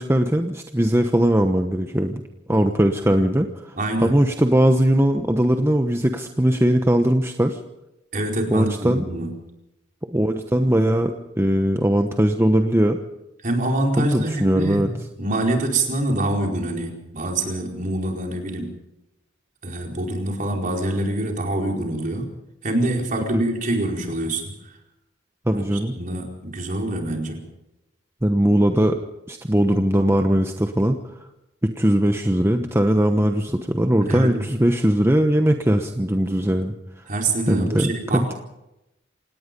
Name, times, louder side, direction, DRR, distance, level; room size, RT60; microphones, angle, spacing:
voice 1, 0.0-2.2 2.5-7.6 8.5-9.0 10.1-13.0 14.0-14.9 23.3-23.4 25.5-25.9 28.2-29.0 29.3-31.0 31.8-36.8 37.5-38.3, right 1 dB, 15° right, 5 dB, 1.0 m, -20 dB
voice 2, 3.8-4.2 8.1-9.3 13.4-14.9 15.2-18.7 19.6-22.3 22.6-24.5 25.5-27.4 34.0-34.4 37.1-38.4, right 1 dB, 45° right, 1 dB, 4.7 m, -25 dB
27.5 x 18.5 x 5.4 m, 0.91 s
head